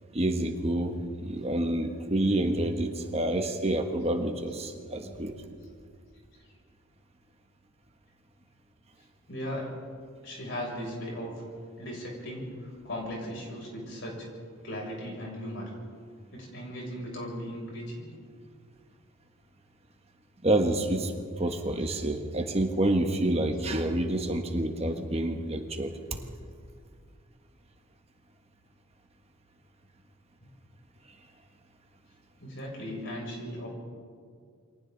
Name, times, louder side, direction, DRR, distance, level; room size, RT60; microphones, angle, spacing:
voice 1, 0.1-5.3 20.4-21.1 21.4-25.9, right 1 dB, 30° right, 4 dB, 1.3 m, -28 dB
voice 2, 9.3-9.7 10.2-11.3 11.8-14.3 14.6-15.7 16.3-18.0 32.4-33.7, equal, 60° left, -2 dB, 7.1 m, -37 dB
29.0 x 23.5 x 4.0 m, 2.1 s
head